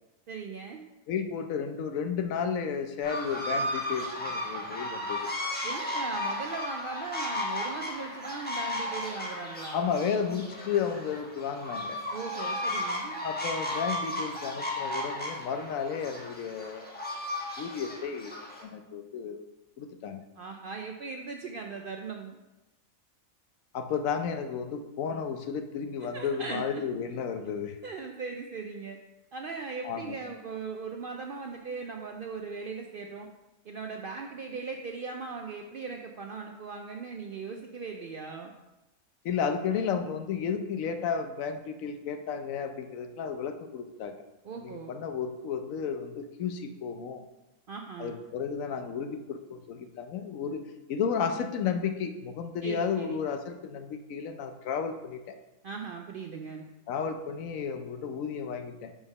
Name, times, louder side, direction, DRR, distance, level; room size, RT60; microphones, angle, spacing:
voice 1, 0.3-0.8 5.6-9.8 12.1-13.2 20.4-22.4 26.0-26.9 27.8-29.0 29.3-33.3 33.6-38.5 44.4-44.9 47.7-48.2 52.6-53.2 55.6-56.7, right 4 dB, 65° right, 3 dB, 0.5 m, -39 dB
voice 2, 1.1-5.3 9.7-12.0 13.2-16.9 17.6-19.4 19.8-20.2 23.7-27.8 29.8-30.2 39.2-44.1 44.6-47.3 48.0-50.6 50.9-55.2 56.9-58.9, left 6 dB, 75° left, 7 dB, 1.0 m, -33 dB
sound 1, 3.0-18.6, left 1 dB, 10° left, 1.0 m, -34 dB
5.0 x 4.8 x 5.3 m, 1.0 s
omnidirectional pair, 1.4 m